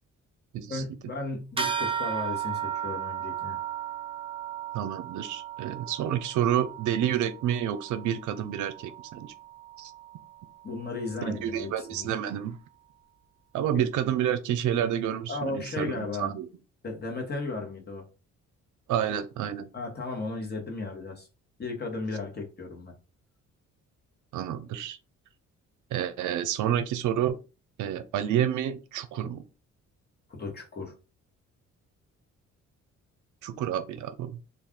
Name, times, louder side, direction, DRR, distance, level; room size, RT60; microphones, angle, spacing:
voice 1, 0.7-3.6 10.6-12.1 15.3-16.3 16.8-18.1 19.7-21.3 21.6-22.9 30.3-30.9, left 3 dB, 35° left, 1.1 m, -35 dB
sound 1, 1.6-11.4, right 9 dB, 20° right, 0.5 m, -36 dB
voice 2, 4.7-9.3 9.8-9.9 11.2-12.6 13.5-16.5 18.9-19.7 24.3-25.0 25.9-27.4 27.8-29.4 33.4-34.4, right 10 dB, 75° right, 0.5 m, -29 dB
2.4 x 2.3 x 3.5 m
cardioid pair, 90°, 30 cm